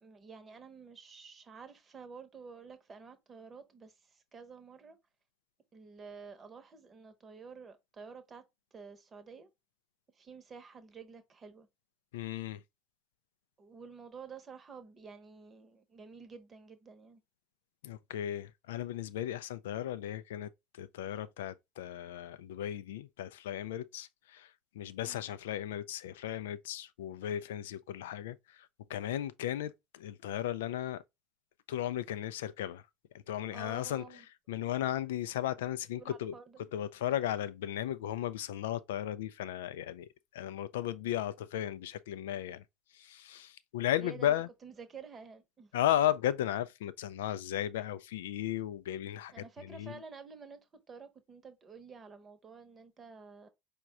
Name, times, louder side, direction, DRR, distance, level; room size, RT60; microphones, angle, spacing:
voice 1, 0.0-5.0 5.7-8.4 8.7-9.5 10.1-11.7 13.6-17.2 25.0-25.2 33.5-34.3 36.0-36.6 44.0-44.3 44.6-45.7 49.3-53.5, right 5 dB, 30° right, 0.9 m, -50 dB
voice 2, 12.1-12.6 17.8-31.0 31.7-32.8 33.3-34.2 34.5-36.3 36.7-42.6 42.9-44.5 45.7-50.0, left 12 dB, 70° left, 0.3 m, -35 dB
4.9 x 2.2 x 3.6 m
figure-of-eight pair, 65°, 0 cm